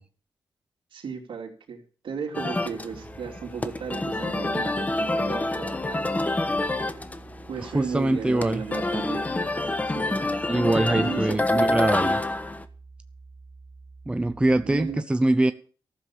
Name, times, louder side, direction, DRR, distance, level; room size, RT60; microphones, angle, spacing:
voice 1, 0.9-6.1 6.5-6.7 7.5-9.3 9.9-10.2 10.9-11.6 14.6-15.0, right 6 dB, 75° right, -1 dB, 2.9 m, -35 dB
sound 1, 2.3-12.6, left 2 dB, 20° left, 1.2 m, -27 dB
sound 2, 2.9-15.0, right 3 dB, 35° right, 1.5 m, -48 dB
voice 2, 7.6-8.6 10.5-12.2 14.1-15.5, right 2 dB, 10° right, 11 dB, 0.6 m, -23 dB
14.5 x 7.2 x 8.5 m, 0.42 s
wide cardioid pair, 110°, 9 cm